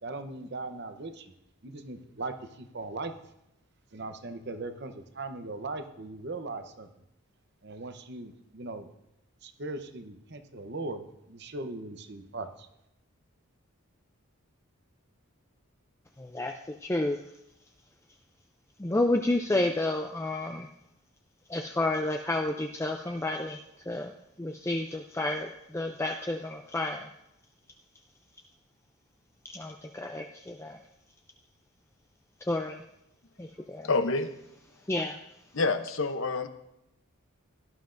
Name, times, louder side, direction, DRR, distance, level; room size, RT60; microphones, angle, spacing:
voice 1, 0.0-1.3 1.6-3.1 3.9-6.9 7.6-8.9 9.4-12.7, right 2 dB, 50° right, 8 dB, 0.8 m, -39 dB
voice 2, 16.2-17.2 18.8-20.7 21.5-23.6 23.9-27.1 29.4-30.8 32.4-32.8 33.4-33.9 34.9-35.2, left 2 dB, 10° left, 4 dB, 0.4 m, -30 dB
voice 3, 33.8-34.3 35.5-36.5, left 3 dB, 65° left, 9 dB, 0.8 m, -27 dB
17.0 x 11.5 x 2.6 m, 0.84 s
head